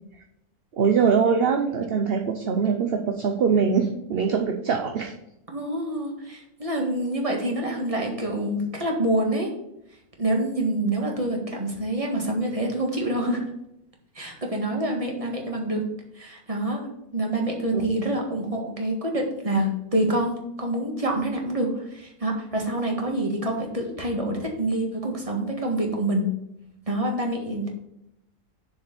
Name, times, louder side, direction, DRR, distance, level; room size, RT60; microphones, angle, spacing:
voice 1, 0.7-5.1 17.7-17.8, right 6 dB, 50° right, 4 dB, 0.8 m, -23 dB
voice 2, 5.5-9.5 10.2-13.4 14.1-15.8 16.2-26.3 26.9-27.7, right 1 dB, 25° right, 1 dB, 1.8 m, -26 dB
7.0 x 4.8 x 6.9 m, 0.84 s
omnidirectional pair, 1.5 m